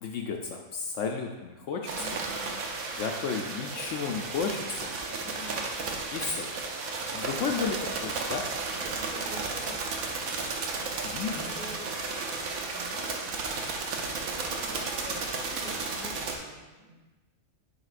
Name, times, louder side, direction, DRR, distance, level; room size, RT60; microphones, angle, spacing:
voice 1, 0.0-2.1 3.0-4.9 6.1-6.5 7.1-8.4 11.0-11.6, left 5 dB, 70° left, 2 dB, 0.8 m, -33 dB
sound 1, 1.9-16.4, right 3 dB, 80° right, 1.2 m, -33 dB
voice 2, 2.0-2.6 5.2-5.6 8.7-13.4 13.9-17.0, equal, 35° right, -5 dB, 1.3 m, -48 dB
7.9 x 5.3 x 2.4 m, 1.2 s
omnidirectional pair, 1.5 m